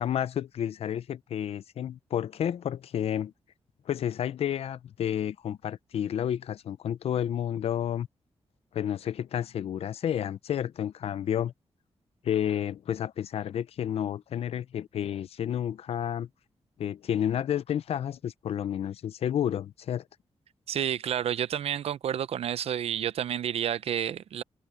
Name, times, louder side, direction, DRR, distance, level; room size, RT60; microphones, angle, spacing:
voice 1, 0.0-3.3 3.9-8.1 8.7-11.5 12.2-16.3 16.8-20.0, left 10 dB, 80° left, 0.6 m, -30 dB
voice 2, 20.7-24.4, right 9 dB, 80° right, 0.6 m, -30 dB
wide cardioid pair, 175°, 10 cm